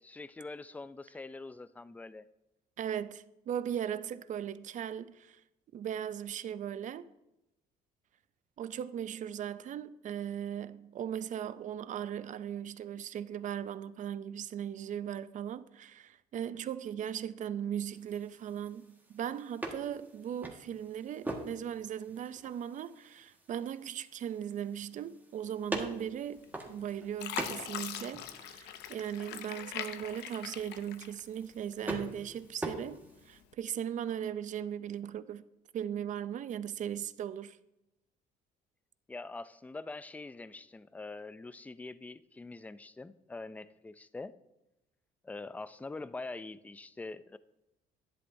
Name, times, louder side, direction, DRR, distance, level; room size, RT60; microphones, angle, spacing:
voice 1, 0.0-2.2 39.1-44.3 45.2-47.4, left 3 dB, 10° left, 0.4 m, -44 dB
voice 2, 2.8-5.4 5.7-7.1 8.6-35.4 35.7-37.6, right 9 dB, 50° right, 0.5 m, -38 dB
sound 1, 17.8-33.4, right 1 dB, 10° right, 1.6 m, -44 dB
Fill (with liquid), 26.4-26.8 27.2-31.6 32.0-32.8 33.4-33.5, left 10 dB, 85° left, 0.7 m, -42 dB
11.0 x 10.5 x 2.7 m
cardioid pair, 110°, 17 cm